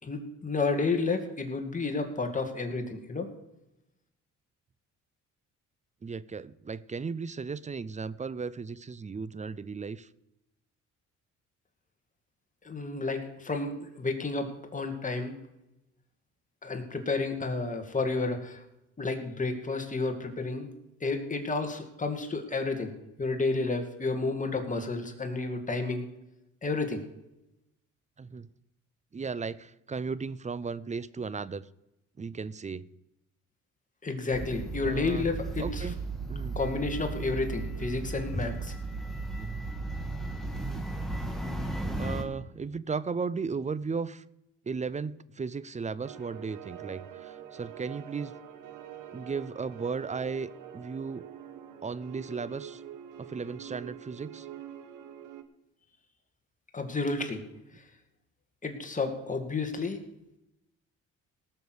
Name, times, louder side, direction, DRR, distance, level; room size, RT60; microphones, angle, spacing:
voice 1, 0.0-3.3 12.6-15.3 16.6-18.6 19.0-20.7 21.0-22.9 23.2-26.1 26.6-27.0 34.0-35.9 36.6-38.7 56.7-57.4 58.6-60.0, left 3 dB, 25° left, 4 dB, 2.4 m, -31 dB
voice 2, 6.0-10.1 17.5-17.7 28.2-28.5 29.1-31.7 32.2-32.9 34.8-35.3 35.6-36.0 36.3-36.6 39.4-39.7 40.5-40.9 42.0-44.2 44.7-48.3 49.1-51.2 51.8-52.8 53.2-54.5, right 5 dB, 25° right, 18 dB, 0.6 m, -35 dB
sound 1, 34.3-42.2, right 2 dB, ahead, 2.3 m, -35 dB
sound 2, 46.0-55.4, right 10 dB, 90° right, 1.2 m, -45 dB
18.0 x 6.8 x 6.4 m, 0.88 s
cardioid pair, 90°, 30 cm